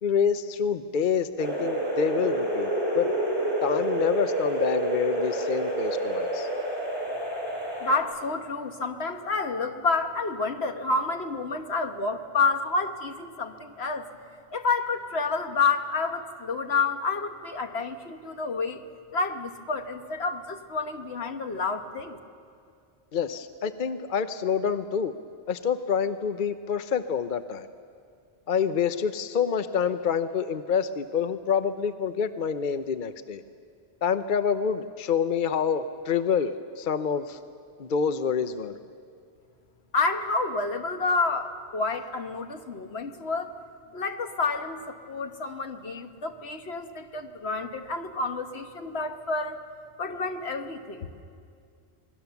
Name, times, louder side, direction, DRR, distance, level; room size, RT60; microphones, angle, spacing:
voice 1, 0.0-3.1 3.6-6.5 23.1-25.1 25.5-27.7 28.5-33.4 34.0-37.4 37.8-38.8, left 7 dB, 50° left, 10 dB, 0.8 m, -27 dB
sound 1, 1.4-8.0, right 1 dB, 35° right, 3.8 m, -28 dB
voice 2, 7.8-14.1 14.5-18.8 19.1-22.2 39.9-43.5 43.9-49.6 50.0-51.1, left 4 dB, 70° left, 6 dB, 1.5 m, -29 dB
26.5 x 20.5 x 7.0 m, 2.3 s
omnidirectional pair, 1.1 m